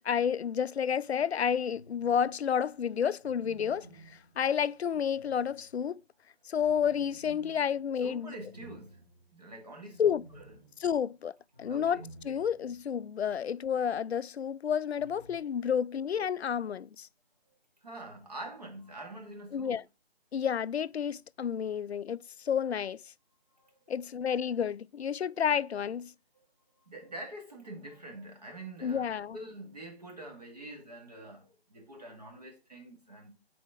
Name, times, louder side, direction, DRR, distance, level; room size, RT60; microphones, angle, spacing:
voice 1, 0.0-6.0 6.5-8.3 10.0-10.2 10.8-11.3 11.6-17.1 19.5-19.8 20.3-23.0 23.9-26.1 28.8-29.4, left 8 dB, 85° left, 0.5 m, -30 dB
sound 1, 1.7-2.4 3.2-5.9 6.6-12.8 13.1-13.2 15.0-15.4, right 1 dB, 20° right, 2.5 m, -55 dB
voice 2, 8.0-9.0 9.3-10.4 11.7-12.0 17.8-19.8 23.6-23.7 26.9-33.3, right 1 dB, 40° right, 2.2 m, -45 dB
9.5 x 4.2 x 4.8 m
figure-of-eight pair, 180°, 31 cm